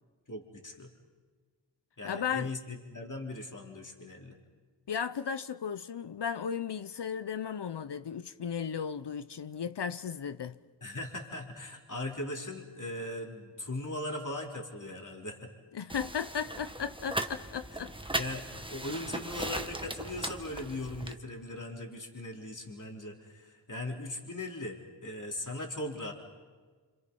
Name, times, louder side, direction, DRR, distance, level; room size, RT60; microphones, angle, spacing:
voice 1, 0.3-0.9 2.0-4.4 10.8-15.5 17.7-26.1, left 1 dB, 45° left, 3.7 m, -39 dB
voice 2, 2.0-2.5 4.9-10.6 15.7-17.9, left 7 dB, 70° left, 0.8 m, -35 dB
sound 1, 15.9-21.1, right 1 dB, 10° right, 1.4 m, -38 dB
28.0 x 26.5 x 5.5 m
cardioid pair, 50°, 43 cm